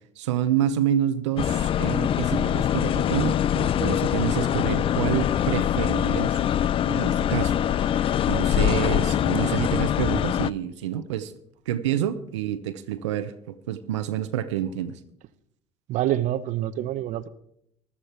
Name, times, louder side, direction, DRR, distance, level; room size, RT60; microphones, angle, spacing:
voice 1, 0.2-6.4 6.9-11.3 11.7-15.0, right 11 dB, 90° right, 0.8 m, -28 dB
sound 1, 1.4-10.5, left 10 dB, 40° left, 0.4 m, -23 dB
voice 2, 15.9-17.3, right 13 dB, 60° right, 0.8 m, -26 dB
14.5 x 12.5 x 4.4 m
hypercardioid pair, 80°, 15 cm